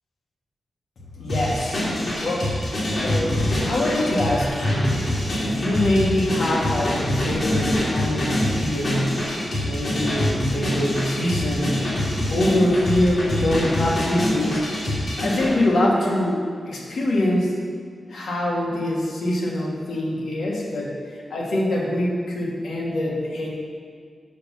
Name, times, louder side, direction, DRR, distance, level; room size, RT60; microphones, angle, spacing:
voice 1, 1.2-2.5 3.0-5.1 5.4-12.0 12.3-16.4 16.7-17.5 18.1-23.5, left 1 dB, 85° left, -3 dB, 1.4 m, -24 dB
sound 1, 1.3-15.5, left 1 dB, 60° left, 2.0 m, -25 dB
5.7 x 5.1 x 6.0 m, 2.1 s
wide cardioid pair, 115°, 0 cm